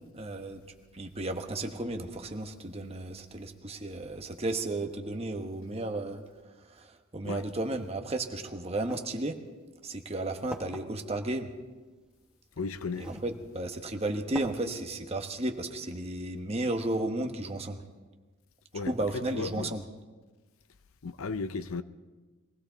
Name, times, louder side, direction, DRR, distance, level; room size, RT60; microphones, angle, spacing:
voice 1, 0.1-0.6 0.9-6.2 6.8-6.9 7.1-9.4 9.8-11.5 13.0-17.8 18.9-19.8, right 2 dB, 30° right, 1.1 m, -33 dB
sound 1, 8.8-9.0 9.9-10.0 10.5-10.8 12.1-12.2 12.9-13.3 13.7-13.8 14.3-14.5, right 1 dB, 5° right, 0.9 m, -40 dB
voice 2, 12.6-13.1 18.7-19.7 21.0-21.8, left 4 dB, 90° left, 0.6 m, -35 dB
22.5 x 16.5 x 3.9 m
head